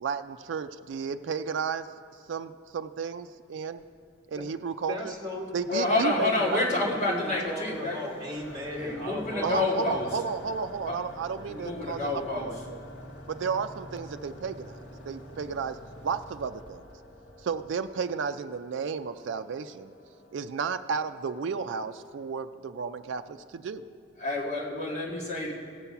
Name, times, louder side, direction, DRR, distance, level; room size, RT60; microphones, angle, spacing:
voice 1, 0.0-1.9 2.3-3.8 4.3-5.1 5.5-6.6 9.4-12.8 13.3-14.8 15.0-15.8 16.0-16.8 17.4-19.9 20.3-23.8, right 5 dB, 75° right, 8 dB, 0.4 m, -33 dB
voice 2, 4.9-5.5 5.8-9.7, left 1 dB, 20° right, -3 dB, 1.7 m, -36 dB
sound 1, 5.7-22.4, equal, 85° left, 1.5 m, -50 dB
voice 3, 5.7-8.0 8.7-10.1 10.9-11.0 11.5-12.5 24.2-25.5, left 2 dB, 35° left, -4 dB, 2.0 m, -28 dB
Motorcycle / Idling, 8.3-18.3, equal, 60° left, 1.5 m, -48 dB
17.0 x 6.9 x 5.8 m, 2.3 s
head